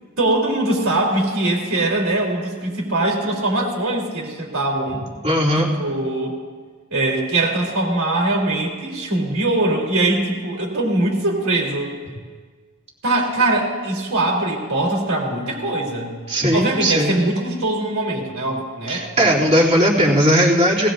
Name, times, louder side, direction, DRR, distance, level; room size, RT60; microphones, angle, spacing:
voice 1, 0.2-5.0 5.6-6.3 6.9-11.9 13.0-16.1 16.5-19.4, right 2 dB, 70° right, -1 dB, 3.4 m, -22 dB
voice 2, 5.2-5.7 16.3-17.1 18.9-20.9, equal, 30° right, -6 dB, 2.9 m, -17 dB
19.5 x 18.0 x 2.6 m, 1.5 s
head